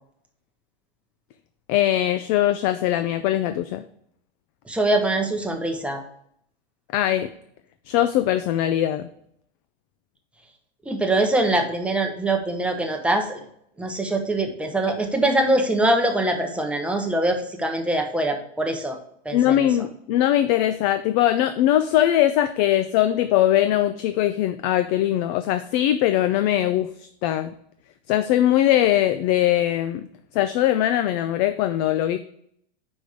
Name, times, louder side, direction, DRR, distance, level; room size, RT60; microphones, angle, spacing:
voice 1, 1.7-3.8 6.9-7.3 7.9-9.1 19.3-27.5 28.1-30.1 30.3-32.2, left 12 dB, 40° left, 11 dB, 0.4 m, -21 dB
voice 2, 4.7-6.0 10.9-13.4 13.8-19.0 19.2-19.7, right 1 dB, 5° right, 3 dB, 0.9 m, -23 dB
5.3 x 5.1 x 6.4 m, 0.69 s
supercardioid pair, 140°, 32 cm